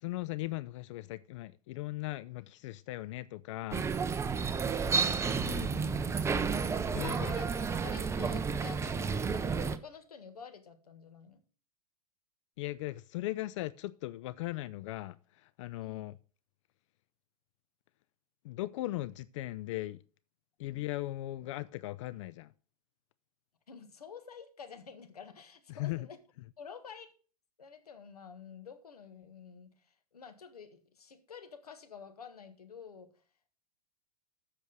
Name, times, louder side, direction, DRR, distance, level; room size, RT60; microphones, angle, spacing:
voice 1, 0.0-3.9 5.4-5.7 6.9-7.1 12.6-16.2 18.4-20.0 20.6-22.5 25.8-26.1, left 17 dB, 55° left, 0.4 m, -38 dB
sound 1, 3.7-9.8, right 5 dB, 15° right, 0.6 m, -31 dB
voice 2, 4.5-6.0 7.0-11.4 15.8-16.1 20.6-20.8 23.7-26.2 26.6-27.1 27.6-29.9 30.1-33.1, left 6 dB, 80° left, 1.5 m, -49 dB
7.9 x 6.3 x 6.4 m
hypercardioid pair, 100°, 19 cm